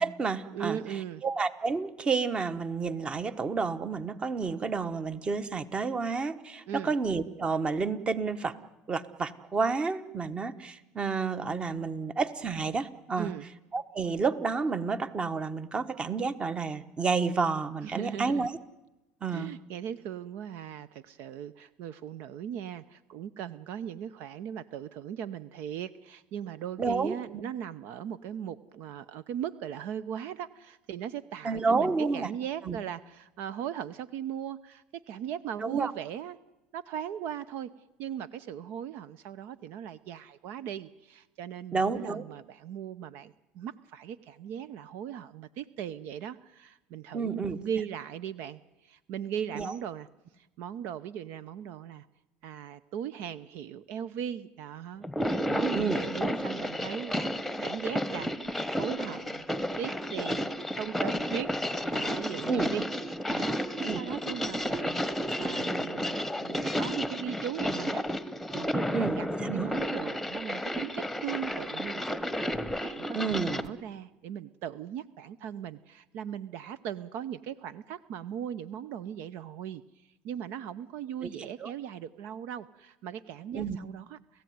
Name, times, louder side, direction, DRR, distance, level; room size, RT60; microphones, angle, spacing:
voice 1, 0.0-0.8 1.2-8.5 8.9-13.3 13.7-18.5 19.2-19.5 26.8-27.1 31.4-32.3 32.6-32.8 35.6-35.9 41.7-42.2 47.1-47.6 49.5-49.7 55.7-56.0 62.5-62.7 63.8-64.0 68.9-69.7 73.1-73.7 81.2-81.7 83.5-83.8, right 4 dB, 25° right, 13 dB, 1.3 m, -30 dB
voice 2, 0.5-1.2 6.7-6.9 13.2-13.4 17.8-18.5 19.3-36.4 36.7-37.7 38.0-50.1 50.3-52.1 52.4-58.3 58.7-59.5 59.8-61.5 61.9-62.8 63.3-68.1 68.5-72.2 72.4-79.8 80.2-84.4, right 9 dB, 65° right, 16 dB, 0.8 m, -38 dB
sound 1, 55.0-73.7, equal, ahead, 1.2 m, -32 dB
30.0 x 15.5 x 9.5 m, 1.0 s
supercardioid pair, 115°, 4 cm